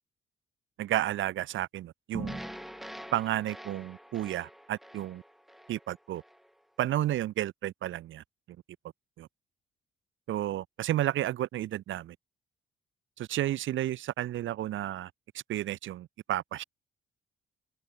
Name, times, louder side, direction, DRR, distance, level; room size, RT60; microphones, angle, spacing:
voice 1, 0.8-2.4 3.1-5.2 5.7-6.2 6.8-8.2 9.2-9.3 10.3-12.1 13.2-16.6, right 13 dB, 75° right, 1.5 m, -32 dB
sound 1, 2.1-6.5, equal, ahead, 1.5 m, -44 dB
open air
cardioid pair, 90°, 20 cm